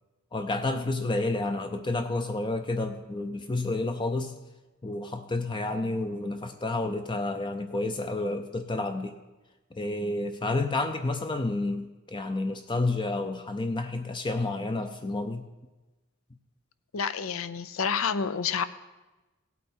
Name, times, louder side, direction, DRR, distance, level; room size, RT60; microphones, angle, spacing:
voice 1, 0.3-4.4 4.8-9.2 9.7-15.4, left 2 dB, 25° left, 7 dB, 0.5 m, -30 dB
voice 2, 16.9-18.6, left 6 dB, 85° left, 14 dB, 0.6 m, -29 dB
17.0 x 8.4 x 4.4 m, 1.1 s
head